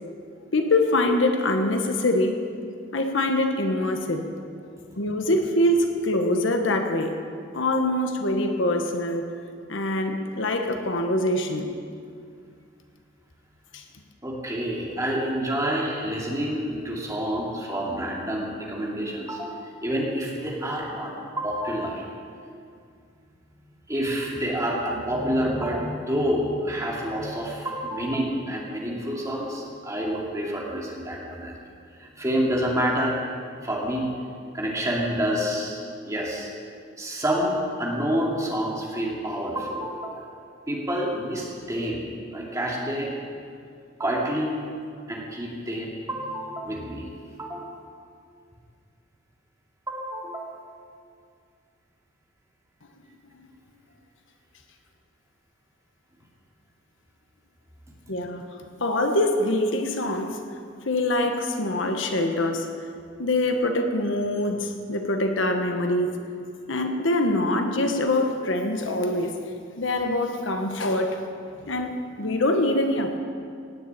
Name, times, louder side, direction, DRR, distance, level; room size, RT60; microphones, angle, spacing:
voice 1, 0.5-2.4 2.9-4.3 5.0-7.2 7.5-9.2 9.7-11.7 13.7-13.8 58.1-58.4 58.8-60.4 60.9-62.7 63.2-66.2 66.7-69.4 69.8-71.2 71.7-73.2, left 1 dB, 70° left, 5 dB, 1.2 m, -24 dB
voice 2, 14.2-22.1 23.9-31.5 32.0-33.2 33.6-34.1 34.5-35.8 36.0-36.5 37.0-40.2 40.7-43.1 44.0-44.6 45.1-47.1 47.4-47.7 49.9-50.6, equal, 15° right, -3 dB, 2.5 m, -28 dB
17.5 x 7.0 x 8.8 m, 2.3 s
head